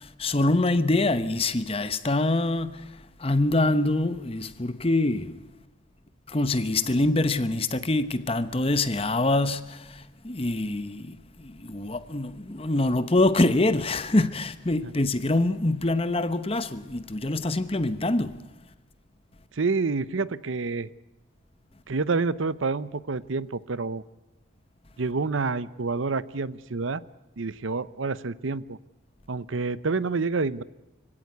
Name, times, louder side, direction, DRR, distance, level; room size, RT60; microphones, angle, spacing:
voice 1, 0.0-5.4 6.3-18.4, left 2 dB, 30° left, 0.9 m, -25 dB
voice 2, 19.5-20.9 21.9-24.0 25.0-27.0 27.4-28.8 29.3-30.6, right 4 dB, 80° right, 0.7 m, -28 dB
25.0 x 16.5 x 9.4 m
head